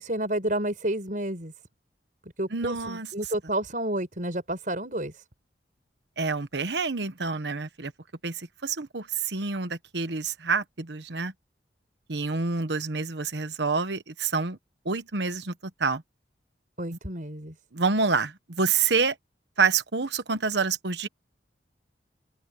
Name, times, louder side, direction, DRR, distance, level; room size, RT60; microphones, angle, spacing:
voice 1, 0.0-1.5 2.2-5.2 16.8-17.5, right 1 dB, 45° right, 6.0 m, -30 dB
voice 2, 2.5-3.1 6.2-7.9 8.2-11.3 12.1-14.6 14.8-15.5 15.8-16.0 16.9-17.0 17.7-19.1 19.6-21.1, right 4 dB, 75° right, 1.2 m, -27 dB
open air
head